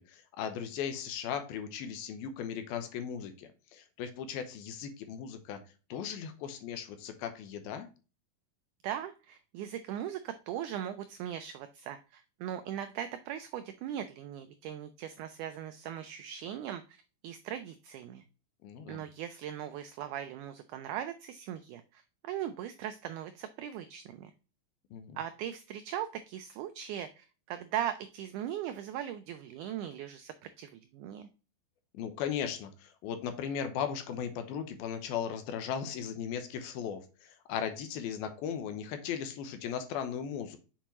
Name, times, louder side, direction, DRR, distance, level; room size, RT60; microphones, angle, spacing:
voice 1, 0.0-5.6 5.9-7.9 18.6-19.0 24.9-25.2 31.9-40.6, left 8 dB, 90° left, 8 dB, 2.8 m, -37 dB
voice 2, 8.8-18.2 18.9-24.3 25.2-31.3, right 10 dB, 90° right, 9 dB, 1.7 m, -39 dB
7.5 x 4.5 x 2.9 m, 0.33 s
omnidirectional pair, 4.2 m